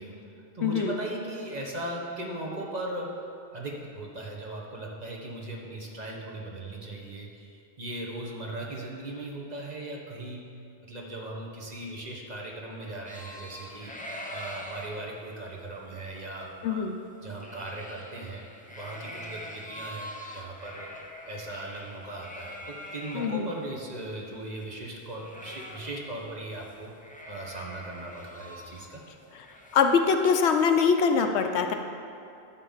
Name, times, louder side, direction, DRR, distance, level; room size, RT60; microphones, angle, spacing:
voice 1, 0.0-3.1 3.5-10.5 10.8-13.9 14.3-16.9 17.2-20.9 21.3-29.0, right 1 dB, 40° right, -1 dB, 1.2 m, -38 dB
voice 2, 0.6-1.0 16.6-17.0 23.1-23.5 29.7-31.7, left 5 dB, 80° left, 6 dB, 0.9 m, -23 dB
sound 1, 13.1-23.5 23.9-24.0 24.2-26.3 26.6-26.7 27.0-30.2, left 1 dB, 10° left, 0.5 m, -44 dB
11.0 x 3.8 x 7.2 m, 2.6 s
omnidirectional pair, 1.1 m